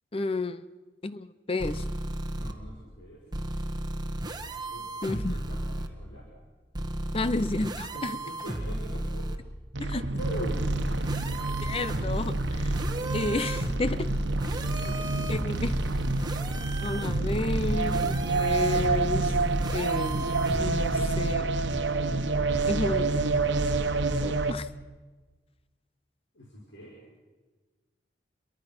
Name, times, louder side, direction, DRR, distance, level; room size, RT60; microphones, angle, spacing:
voice 1, 0.1-0.6 1.0-1.8 5.0-5.4 7.1-8.2 9.8-10.1 11.6-12.8 13.1-14.1 15.3-15.8 16.8-19.3 19.7-21.5 22.7-23.2 24.2-24.7, left 2 dB, 30° left, 0.6 m, -31 dB
sound 1, 1.6-2.5 3.3-5.9 6.7-9.4 10.2-21.4, right 1 dB, 25° right, 1.6 m, -34 dB
voice 2, 2.3-3.2 4.7-6.2 7.9-9.3 10.2-11.1 14.7-15.3 26.3-26.9, equal, 90° left, 6.0 m, -42 dB
sound 2, 9.7-24.5, right 3 dB, 80° right, 1.2 m, -28 dB
29.0 x 23.0 x 6.1 m
head